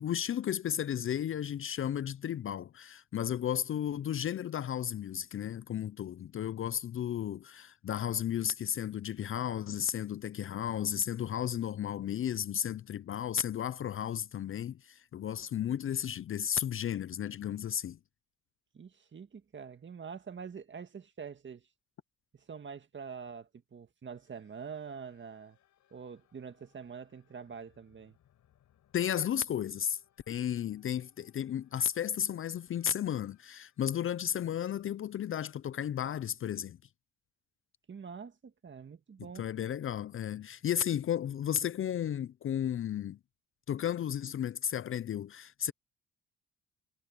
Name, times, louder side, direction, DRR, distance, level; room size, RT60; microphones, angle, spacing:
voice 1, 0.0-18.0 28.9-30.0 30.3-36.8 39.4-43.2 43.7-45.7, left 9 dB, 45° left, 0.5 m, -33 dB
voice 2, 18.7-21.6 22.3-25.6 25.9-28.2 37.9-39.4, right 6 dB, 40° right, 1.9 m, -45 dB
sound 1, 24.1-35.4, left 12 dB, 70° left, 7.1 m, -72 dB
cardioid pair, 90°, 30 cm